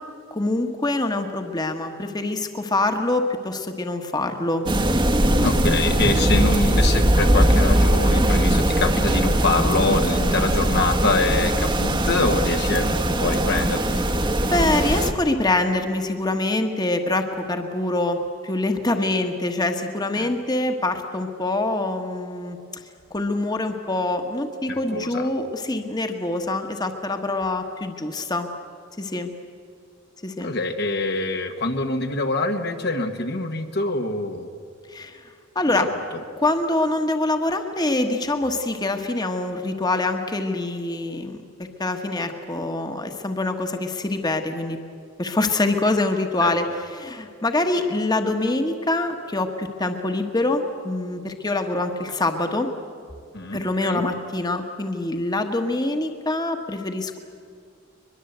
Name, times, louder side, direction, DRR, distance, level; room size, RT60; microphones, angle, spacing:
voice 1, 0.3-4.6 6.3-6.4 10.3-10.4 14.5-22.6 23.1-28.5 29.0-29.3 30.2-30.5 34.9-35.2 35.5-35.9 36.4-41.4 41.8-44.8 45.2-46.7 46.9-52.7 53.5-57.2, left 2 dB, 20° left, 5 dB, 1.3 m, -25 dB
sound 1, 4.7-15.1, right 1 dB, 25° right, 1.1 m, -20 dB
voice 2, 5.3-14.0 20.2-20.3 24.7-25.3 30.4-34.5 35.7-36.2 46.4-46.5 53.3-54.1, left 2 dB, 55° left, 5 dB, 1.3 m, -25 dB
22.5 x 22.0 x 8.0 m, 2.3 s
head